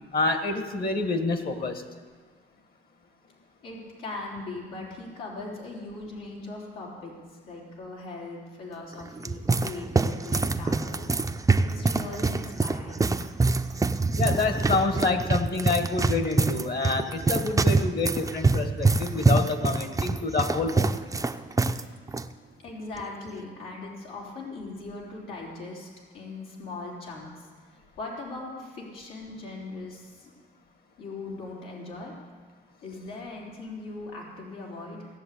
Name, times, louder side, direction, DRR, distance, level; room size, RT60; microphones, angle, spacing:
voice 1, 0.1-1.8 14.2-20.9, left 3 dB, 50° left, 7 dB, 1.6 m, -27 dB
voice 2, 3.6-7.1 7.5-11.2 11.6-13.2 22.6-25.9 26.1-27.5 28.0-30.3 31.0-32.1 32.8-35.1, left 2 dB, 85° left, -4 dB, 3.5 m, -39 dB
sound 1, 8.9-21.8 22.1-22.2 23.0-23.3, right 3 dB, 15° right, 0.6 m, -25 dB
17.0 x 7.1 x 8.4 m, 1.5 s
cardioid pair, 90°, 20 cm